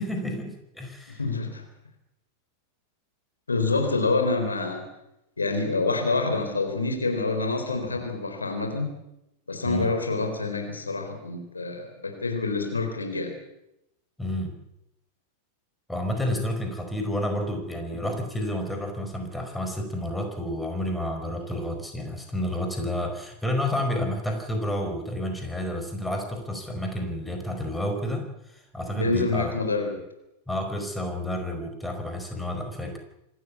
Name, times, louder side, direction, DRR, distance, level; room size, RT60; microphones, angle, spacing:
voice 1, 0.0-1.2 9.6-9.9 14.2-14.6 15.9-29.5 30.5-33.0, left 1 dB, 5° left, 4 dB, 4.8 m, -30 dB
voice 2, 1.1-1.6 3.5-4.8 5.4-8.9 9.5-13.3 28.9-30.0, left 3 dB, 75° left, 5 dB, 3.9 m, -27 dB
26.0 x 13.5 x 8.5 m, 0.85 s
figure-of-eight pair, 90°, 0 cm